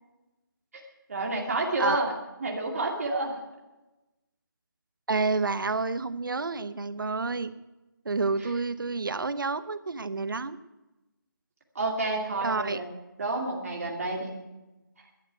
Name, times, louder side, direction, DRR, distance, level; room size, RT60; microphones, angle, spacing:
voice 1, 1.1-2.1 2.4-3.4 11.7-12.9 13.2-14.4, right 2 dB, 45° right, 0 dB, 2.5 m, -29 dB
voice 2, 5.1-7.5 8.0-10.6 12.4-12.8, right 4 dB, 70° right, 15 dB, 1.0 m, -29 dB
11.5 x 8.8 x 9.2 m, 1.0 s
figure-of-eight pair, 170°, 11 cm